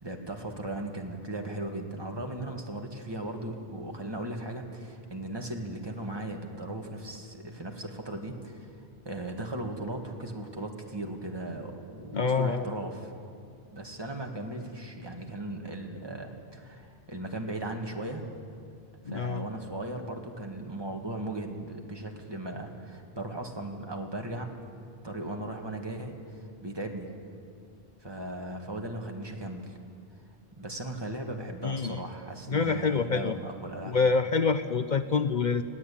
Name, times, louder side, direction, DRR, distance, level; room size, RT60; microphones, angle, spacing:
voice 1, 0.0-8.7 9.1-13.1 13.7-18.2 19.1-24.5 25.0-27.1 28.0-29.8 30.6-34.0, right 1 dB, 25° right, 2 dB, 2.0 m, -37 dB
voice 2, 12.1-12.6 19.1-19.5 31.6-32.0 32.5-33.3 33.9-35.6, left 4 dB, 50° left, 10 dB, 0.8 m, -26 dB
21.0 x 16.5 x 8.6 m, 2.3 s
omnidirectional pair, 1.1 m